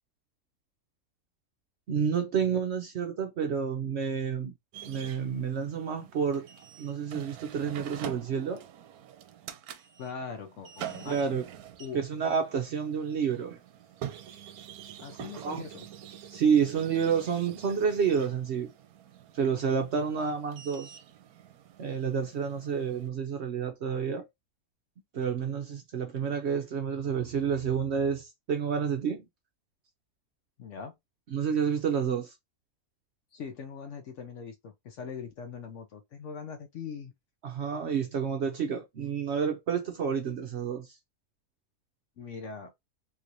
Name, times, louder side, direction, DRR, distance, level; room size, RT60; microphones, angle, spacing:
voice 1, 1.9-4.5 4.9-6.5 6.8-8.6 11.1-11.4 11.9-13.6 15.4-15.6 16.3-18.7 19.3-21.0 21.8-24.3 25.1-29.2 31.3-32.3 37.4-40.9, right 7 dB, 60° right, 0.7 m, -29 dB
sound 1, 4.7-23.1, right 10 dB, 80° right, 1.1 m, -46 dB
voice 2, 10.0-11.4 11.8-12.0 15.0-15.9 30.6-30.9 33.3-37.1 42.2-42.7, left 5 dB, 65° left, 0.9 m, -41 dB
3.3 x 3.0 x 2.6 m
omnidirectional pair, 1.6 m